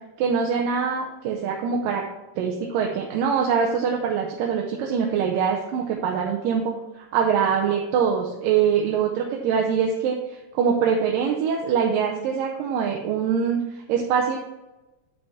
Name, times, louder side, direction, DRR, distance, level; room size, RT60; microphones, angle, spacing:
voice 1, 0.2-2.0 2.4-14.4, right 7 dB, 85° right, 0 dB, 2.4 m, -24 dB
9.5 x 5.3 x 3.5 m, 1.1 s
omnidirectional pair, 3.9 m